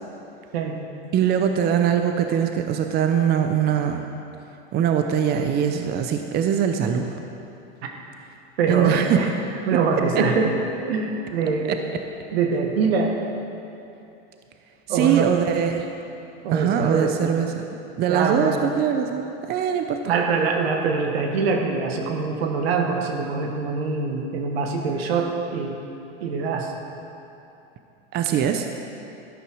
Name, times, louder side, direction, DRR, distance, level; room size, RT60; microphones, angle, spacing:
voice 1, 1.1-4.0 4.7-7.2 8.7-9.2 14.9-16.0 16.5-20.1 28.1-28.7, right 8 dB, 30° right, 6 dB, 0.7 m, -22 dB
voice 2, 8.6-9.3 9.7-10.6 10.9-11.8 12.3-13.2 14.9-15.3 16.4-17.3 18.1-18.6 20.1-25.8 26.2-26.7, right 4 dB, 75° right, 3 dB, 1.7 m, -24 dB
12.5 x 11.0 x 4.7 m, 2.8 s
hypercardioid pair, 115°, 31 cm